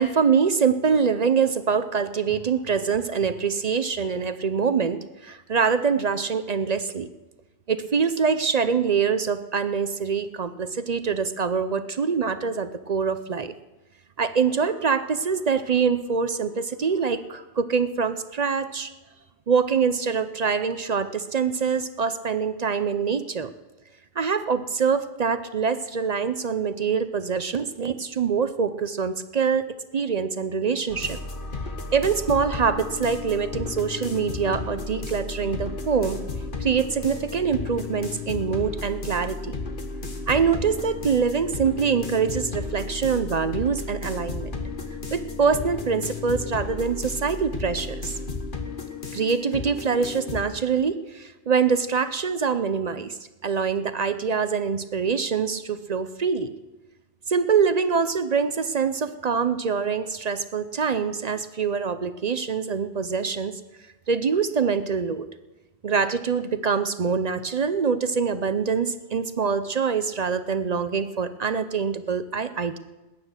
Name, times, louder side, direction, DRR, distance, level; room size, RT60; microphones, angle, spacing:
voice 1, 0.0-7.1 7.7-13.5 14.2-18.9 19.5-23.5 24.2-29.7 29.9-31.2 31.9-36.2 36.6-39.6 40.3-44.5 45.1-48.1 49.1-53.2 53.4-56.5 57.3-63.6 64.1-65.2 65.8-72.8, right 6 dB, 50° right, 12 dB, 0.6 m, -24 dB
sound 1, 30.9-50.4, left 4 dB, 55° left, 1.5 m, -33 dB
19.5 x 9.7 x 6.5 m, 1.1 s
omnidirectional pair, 1.1 m